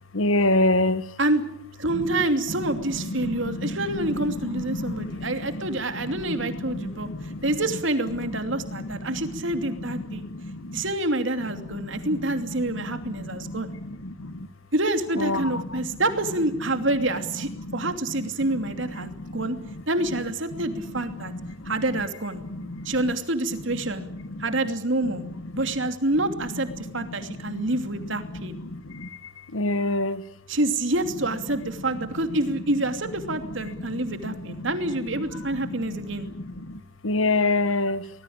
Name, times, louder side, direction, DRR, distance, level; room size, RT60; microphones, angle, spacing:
voice 1, 0.1-1.0 1.9-2.0 2.9-5.6 5.9-7.5 8.7-10.8 11.6-12.2 12.7-14.5 15.2-15.8 17.6-17.9 19.0-19.6 21.3-21.7 22.5-22.9 24.3-24.4 25.0-25.2 27.1-27.6 28.3-29.1 29.5-30.2 33.8-34.7 35.4-35.8 36.1-38.0, left 2 dB, 85° left, 1.3 m, -29 dB
voice 2, 1.8-10.2 10.7-13.7 14.7-19.6 19.9-21.3 21.6-22.4 22.8-24.1 24.4-25.2 25.6-28.6 30.5-36.3, right 2 dB, 70° right, 2.8 m, -27 dB
24.5 x 20.5 x 8.8 m
head